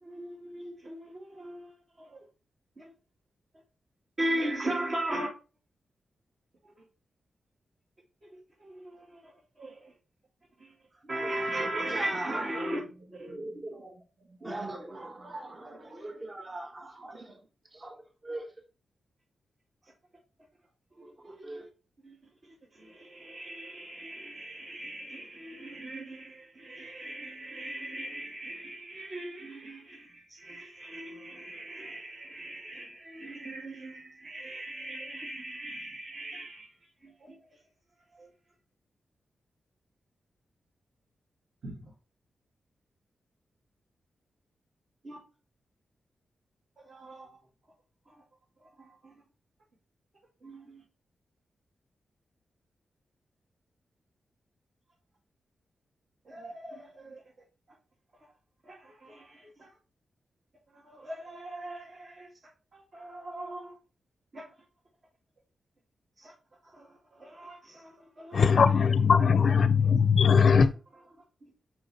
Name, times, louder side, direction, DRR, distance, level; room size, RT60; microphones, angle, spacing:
voice 1, 0.0-2.2 2.8-2.9 4.2-5.3 6.6-6.8 8.2-9.0 9.6-9.9 10.6-10.7 11.1-12.8 13.1-13.3 21.2-21.6 22.0-22.2 22.4-37.6 38.1-38.3 41.6-41.9 45.0-45.2 46.8-47.3 48.1-48.2 48.6-49.1 50.4-50.8 56.2-57.2 58.6-59.7 60.7-62.3 62.7-63.8 64.3-64.5 66.2-66.3 66.6-68.7, right 1 dB, 45° right, 2.3 m, -39 dB
voice 2, 10.9-12.7 13.2-17.4 17.7-18.5 20.9-21.7, right 2 dB, 25° right, 1.2 m, -41 dB
voice 3, 68.3-70.7, left 6 dB, 50° left, 0.5 m, -20 dB
5.8 x 4.9 x 4.3 m
wide cardioid pair, 155°, 0 cm